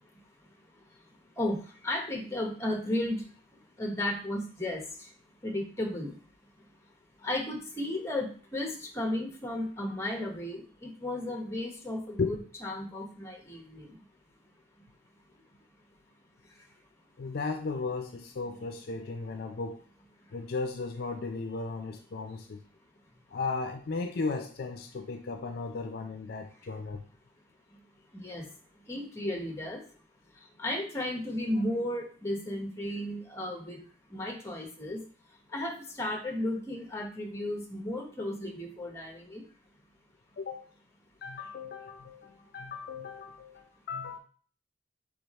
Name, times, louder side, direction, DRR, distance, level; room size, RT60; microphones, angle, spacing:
voice 1, 1.4-3.2 3.8-5.1 5.4-6.1 7.2-14.0 28.1-28.4 28.9-29.8 30.6-33.8 34.1-35.0 35.5-39.4, left 1 dB, 15° left, 1 dB, 0.9 m, -34 dB
voice 2, 17.2-19.8 20.3-22.6 23.3-27.0 40.4-40.7 41.2-44.2, left 4 dB, 55° left, 5 dB, 0.4 m, -35 dB
3.6 x 3.4 x 4.0 m, 0.43 s
head